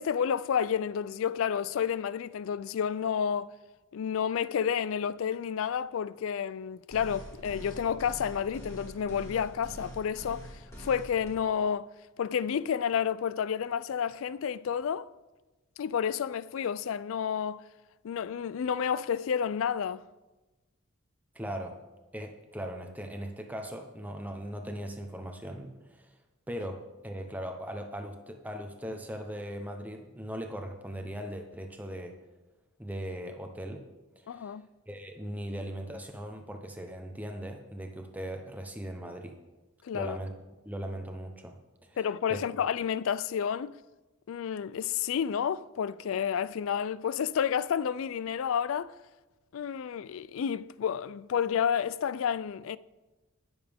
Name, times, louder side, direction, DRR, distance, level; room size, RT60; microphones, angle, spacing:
voice 1, 0.0-3.5 3.9-11.9 12.2-15.1 15.8-17.6 18.0-20.0 34.3-34.7 39.8-40.2 42.0-43.7 44.3-48.9 49.5-52.8, left 7 dB, 70° left, 0.3 m, -30 dB
sound 1, 6.9-11.3, right 1 dB, 15° left, 2.5 m, -45 dB
voice 2, 21.3-21.8 22.1-26.1 26.5-32.1 32.8-33.9 34.2-34.6 34.9-39.4 39.9-40.3 40.6-41.6 41.8-42.0 42.3-42.4, equal, 5° right, 0.8 m, -39 dB
19.5 x 7.1 x 3.5 m
head